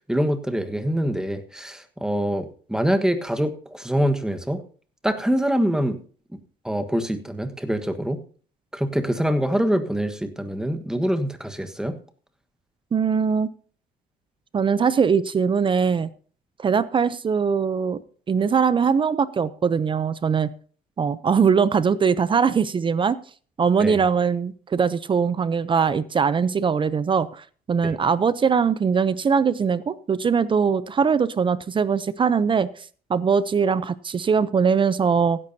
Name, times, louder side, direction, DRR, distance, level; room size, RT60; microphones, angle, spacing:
voice 1, 0.1-4.6 5.0-6.0 6.3-6.4 6.6-8.2 8.7-12.0 23.8-24.0 27.8-28.0, equal, 5° right, 8 dB, 1.4 m, -24 dB
voice 2, 12.9-13.5 14.5-16.1 16.6-18.0 18.3-20.5 21.0-23.2 23.6-32.7 33.1-35.4, right 6 dB, 30° right, 16 dB, 0.6 m, -21 dB
16.0 x 11.0 x 2.8 m, 0.42 s
cardioid pair, 110°, 17 cm